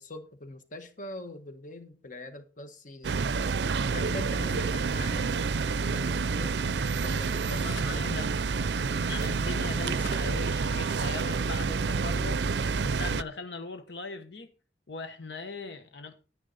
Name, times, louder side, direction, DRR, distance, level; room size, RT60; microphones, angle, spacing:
voice 1, 0.0-3.2 3.9-6.6 7.0-8.1, left 2 dB, 45° left, 1.4 m, -43 dB
sound 1, 3.0-13.2, right 4 dB, 70° right, 0.5 m, -28 dB
voice 2, 7.4-8.4 9.1-12.4 12.8-14.5 14.9-16.2, left 4 dB, 80° left, 1.1 m, -39 dB
10.5 x 10.0 x 4.1 m
head